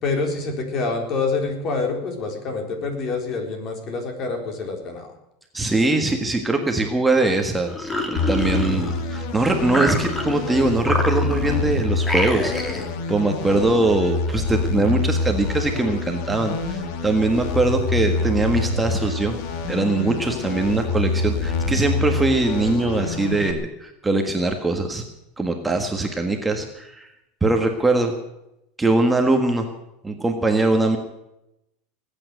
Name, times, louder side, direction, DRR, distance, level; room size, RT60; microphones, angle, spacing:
voice 1, 0.0-5.1, left 3 dB, 40° left, 4 dB, 3.9 m, -26 dB
voice 2, 5.5-12.5 13.1-19.4 19.7-25.0 25.4-27.1 27.4-28.1 28.8-29.7 30.0-31.0, right 2 dB, 10° right, 4 dB, 1.6 m, -22 dB
sound 1, 7.7-9.2 9.7-10.5 10.8-11.6 12.0-12.9, left 1 dB, 10° left, 2.0 m, -27 dB
sound 2, 8.2-23.5, left 3 dB, 60° left, 2.2 m, -26 dB
20.0 x 8.9 x 8.0 m, 0.86 s
supercardioid pair, 135°, 0 cm